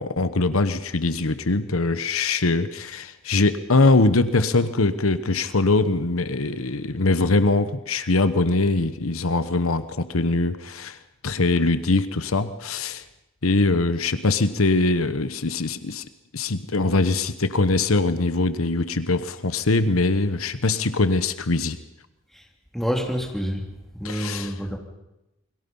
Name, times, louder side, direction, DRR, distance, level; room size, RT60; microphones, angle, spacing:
voice 1, 0.0-11.0 11.2-13.0 13.4-16.1 16.3-21.8 24.0-24.5, left 3 dB, 85° left, 12 dB, 1.1 m, -22 dB
voice 2, 22.7-24.8, equal, ahead, 1 dB, 3.0 m, -28 dB
29.0 x 22.0 x 5.6 m, 0.92 s
head